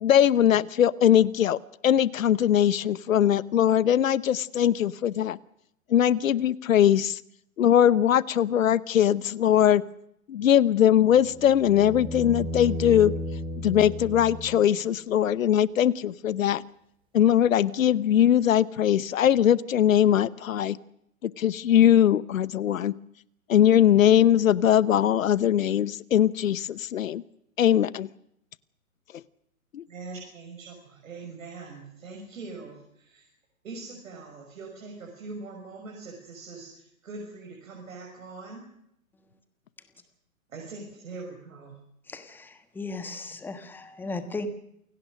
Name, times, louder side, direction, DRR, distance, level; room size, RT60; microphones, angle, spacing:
voice 1, 0.0-5.4 5.9-7.2 7.6-9.8 10.3-13.1 13.6-16.6 17.1-20.8 21.2-22.9 23.5-27.2 27.6-28.1 29.7-29.8, left 10 dB, 70° left, 19 dB, 1.0 m, -21 dB
sound 1, 10.9-15.0 17.4-17.5, equal, 10° right, 3.3 m, -35 dB
voice 2, 29.9-33.3 33.6-38.7 40.5-41.8, right 3 dB, 65° right, 0 dB, 6.4 m, -42 dB
voice 3, 42.1-44.5, left 3 dB, 5° left, 9 dB, 1.3 m, -36 dB
28.0 x 18.0 x 6.5 m, 0.76 s
hypercardioid pair, 140°, 43 cm